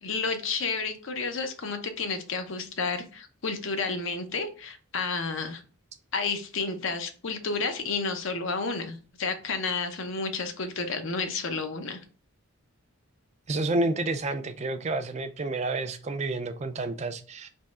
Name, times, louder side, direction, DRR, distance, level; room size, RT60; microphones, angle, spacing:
voice 1, 0.0-5.6 6.1-12.0, left 4 dB, 55° left, 0.6 m, -31 dB
voice 2, 13.5-17.5, right 2 dB, 30° right, 0.4 m, -29 dB
3.5 x 3.0 x 4.2 m
head